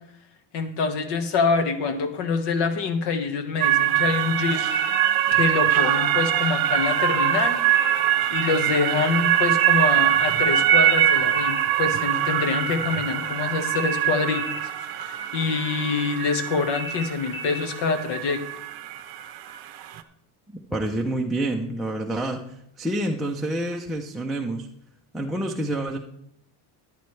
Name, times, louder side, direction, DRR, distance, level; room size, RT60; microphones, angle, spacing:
voice 1, 0.5-4.6 5.3-7.6 8.3-14.7 15.0-18.4, left 5 dB, 55° left, 8 dB, 1.4 m, -25 dB
sound 1, 3.6-20.0, right 11 dB, 45° right, 0.7 m, -23 dB
sound 2, 4.7-5.7 7.7-8.7 10.7-11.7 13.7-14.7 16.7-17.7, left 1 dB, 25° left, 1.7 m, -35 dB
voice 2, 20.5-22.4 22.8-24.7 25.1-26.0, right 1 dB, ahead, -1 dB, 0.4 m, -28 dB
13.5 x 10.5 x 3.2 m, 0.71 s
cardioid pair, 155°, 49 cm